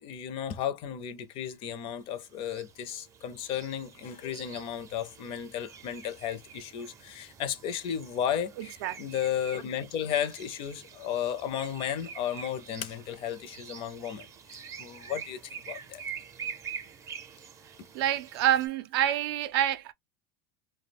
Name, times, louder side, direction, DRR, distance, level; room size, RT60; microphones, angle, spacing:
voice 1, 0.0-16.0, left 9 dB, 45° left, 0.5 m, -34 dB
sound 1, 1.8-18.7, right 7 dB, 25° right, 0.5 m, -46 dB
voice 2, 8.6-9.0 17.9-19.9, right 11 dB, 80° right, 0.4 m, -27 dB
2.2 x 2.1 x 3.3 m
supercardioid pair, 135°, 13 cm